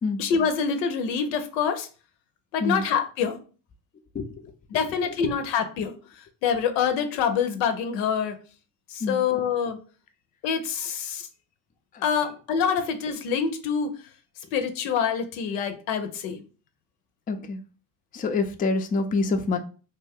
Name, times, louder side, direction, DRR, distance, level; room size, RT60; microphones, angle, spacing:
voice 1, 0.2-1.9 2.5-3.4 4.7-5.9 6.4-8.3 8.9-9.8 10.4-11.3 12.0-13.9 14.5-16.4, left 7 dB, 85° left, 7 dB, 0.6 m, -26 dB
voice 2, 17.3-17.6 18.1-19.6, left 3 dB, 20° left, 6 dB, 0.3 m, -26 dB
2.7 x 2.2 x 3.5 m, 0.37 s
hypercardioid pair, 60°, 49 cm